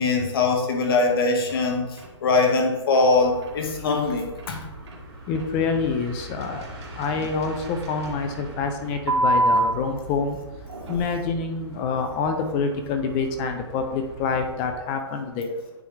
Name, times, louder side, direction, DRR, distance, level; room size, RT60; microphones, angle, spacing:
voice 1, 0.0-1.9 2.2-4.7, left 3 dB, 55° left, 3 dB, 1.4 m, -22 dB
sound 1, 1.5-1.6 2.0-2.1 2.5-2.6 2.9-3.1 3.4-3.6 3.9-4.0 4.4-4.5 4.9-5.0 5.3-5.5 6.2-8.1 9.1-9.6 10.6-11.3, right 1 dB, 70° right, 1.8 m, -26 dB
sound 2, 3.1-14.7, right 1 dB, 50° right, 2.0 m, -41 dB
voice 2, 5.3-10.4 10.9-15.6, left 5 dB, 15° left, 6 dB, 0.4 m, -27 dB
9.2 x 3.4 x 3.2 m, 1.1 s
hypercardioid pair, 160°, 15 cm